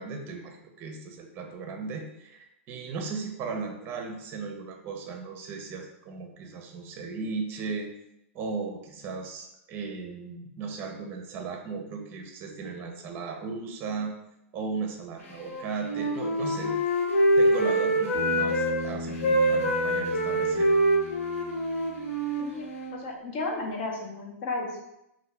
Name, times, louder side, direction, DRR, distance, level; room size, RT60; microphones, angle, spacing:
voice 1, 0.0-7.9 8.3-14.1 14.5-16.8 17.4-20.7, right 4 dB, 30° right, 3 dB, 0.6 m, -36 dB
Wind instrument woodwind instrument, 15.4-18.8 19.1-23.0, right 1 dB, 90° left, 0.8 m, -25 dB
Bass guitar, 18.1-22.4, left 1 dB, 70° left, 1.3 m, -38 dB
voice 2, 22.4-24.8, left 2 dB, 50° left, 0 dB, 0.8 m, -34 dB
2.7 x 2.5 x 3.3 m, 0.83 s
hypercardioid pair, 140°, 7 cm